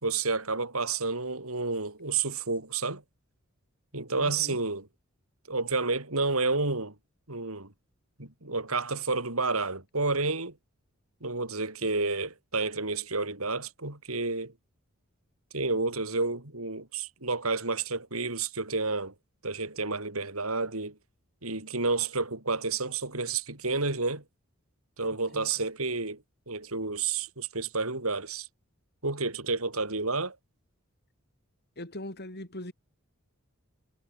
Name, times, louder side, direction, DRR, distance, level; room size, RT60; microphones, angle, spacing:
voice 1, 0.0-3.0 3.9-4.9 5.5-6.9 7.3-7.7 8.2-10.5 11.2-14.5 15.5-19.1 19.4-20.9 21.4-24.2 25.0-26.2 26.5-28.5 29.0-30.4, right 3 dB, 85° right, 5.8 m, -30 dB
voice 2, 4.1-4.6 25.3-25.5 31.8-32.7, left 1 dB, 50° left, 7.5 m, -41 dB
head